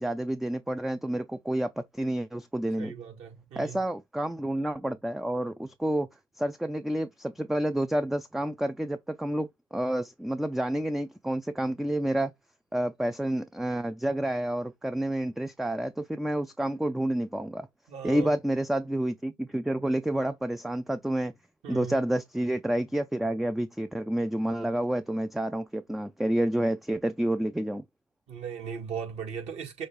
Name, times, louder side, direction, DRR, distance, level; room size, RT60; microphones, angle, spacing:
voice 1, 0.0-2.9 3.6-6.1 6.4-12.3 12.7-17.7 18.0-21.3 21.7-27.8, right 1 dB, ahead, 0.3 m, -29 dB
voice 2, 2.8-3.8 17.9-18.3 21.6-22.0 28.3-29.9, right 7 dB, 60° right, 2.0 m, -37 dB
6.2 x 2.4 x 3.2 m
supercardioid pair, 95°, 12 cm